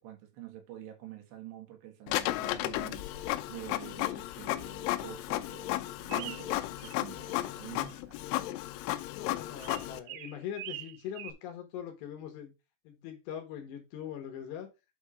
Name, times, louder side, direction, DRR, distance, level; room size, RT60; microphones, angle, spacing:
voice 1, 0.0-8.2, right 12 dB, 70° right, 3.6 m, -47 dB
Printer, 2.1-10.0, left 16 dB, 90° left, 3.0 m, -34 dB
sound 1, 6.1-7.0 7.3-7.9 9.6-11.3, right 13 dB, 90° right, 2.3 m, -44 dB
voice 2, 9.1-12.5 12.8-14.7, left 9 dB, 70° left, 3.2 m, -42 dB
8.4 x 3.6 x 4.8 m
omnidirectional pair, 5.5 m